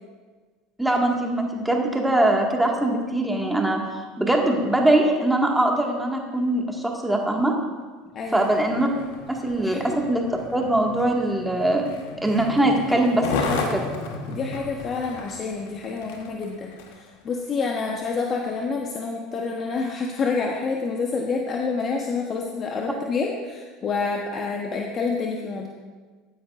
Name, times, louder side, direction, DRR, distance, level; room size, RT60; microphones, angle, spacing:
voice 1, 0.8-3.8 4.2-7.5 8.3-8.9 9.3-10.2 10.5-11.9 12.2-13.9, right 1 dB, 5° right, 0 dB, 1.8 m, -22 dB
voice 2, 8.1-8.5 9.6-10.0 14.3-25.7, left 4 dB, 40° left, 1 dB, 1.0 m, -28 dB
Skateboard, 8.2-17.1 17.7-17.8, left 4 dB, 75° left, 1.3 m, -34 dB
15.0 x 9.4 x 2.5 m, 1.4 s
hypercardioid pair, 80°, 0 cm